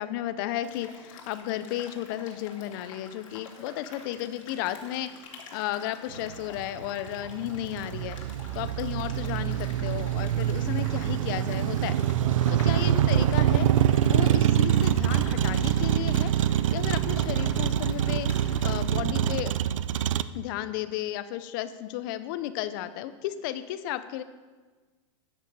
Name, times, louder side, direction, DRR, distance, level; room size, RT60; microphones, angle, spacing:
voice 1, 0.0-5.1 5.5-8.2 8.5-11.9 12.5-16.3 16.7-19.5 20.3-24.2, left 13 dB, 40° left, 12 dB, 0.7 m, -33 dB
sound 1, 0.6-18.9, left 5 dB, 85° left, 2.5 m, -48 dB
Motor vehicle (road), 6.2-20.2, right 10 dB, 80° right, 0.5 m, -25 dB
13.0 x 8.3 x 4.8 m, 1.4 s
supercardioid pair, 155°, 16 cm